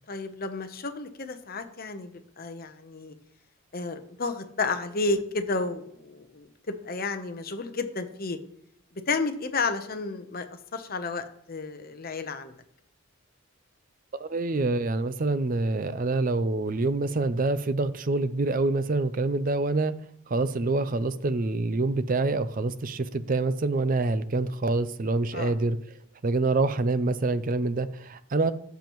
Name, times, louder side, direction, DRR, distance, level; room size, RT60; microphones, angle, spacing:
voice 1, 0.1-3.1 3.7-8.4 9.1-12.5 25.3-25.5, left 3 dB, 45° left, 8 dB, 0.8 m, -32 dB
voice 2, 14.1-19.9 20.3-25.8 26.2-28.5, right 3 dB, 40° right, 14 dB, 0.5 m, -26 dB
14.5 x 7.0 x 3.1 m, 0.69 s
head